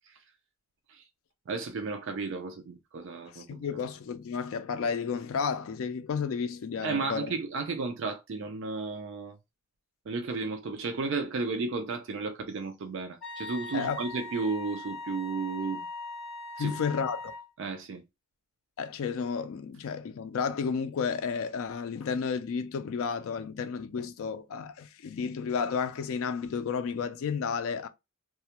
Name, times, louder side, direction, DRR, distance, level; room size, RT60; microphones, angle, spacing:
voice 1, 1.5-3.6 6.8-9.3 10.1-15.9 16.6-16.8 17.6-18.0, right 4 dB, 55° right, 0.4 m, -33 dB
voice 2, 3.3-7.3 13.7-14.0 16.6-17.3 18.8-27.9, left 6 dB, 65° left, 0.3 m, -32 dB
Wind instrument woodwind instrument, 13.2-17.5, left 2 dB, ahead, 0.8 m, -40 dB
2.2 x 2.1 x 2.8 m
head